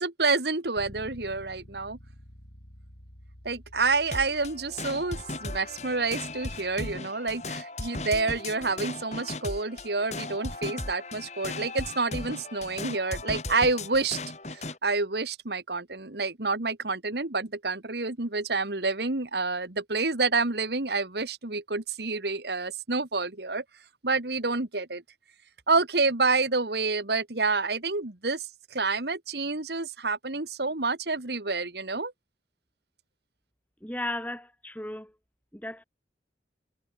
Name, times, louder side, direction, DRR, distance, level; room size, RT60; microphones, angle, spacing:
voice 1, 0.0-2.0 3.5-14.2 14.5-23.6 24.0-25.0 25.7-32.1, right 3 dB, 70° right, 1.9 m, -28 dB
Bass guitar, 0.8-7.0, equal, 70° left, 7.1 m, -50 dB
sound 1, 4.1-14.8, left 2 dB, 40° left, 4.7 m, -37 dB
voice 2, 33.8-35.1 35.5-35.8, left 1 dB, 10° left, 5.4 m, -35 dB
head